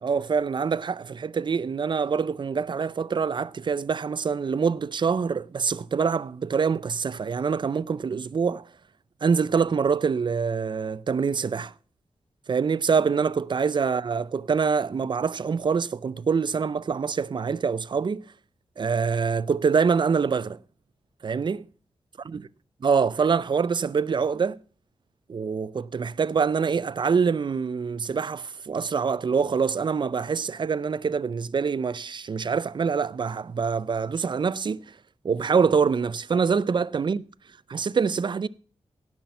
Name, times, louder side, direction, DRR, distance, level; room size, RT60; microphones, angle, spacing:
voice 1, 0.0-8.7 9.2-11.7 12.5-18.3 18.8-20.6 21.2-21.7 22.8-24.6 25.3-34.8 35.2-37.2 37.7-38.5, right 5 dB, 45° right, 0.5 m, -25 dB
17.0 x 6.0 x 5.6 m
wide cardioid pair, 110°, 11 cm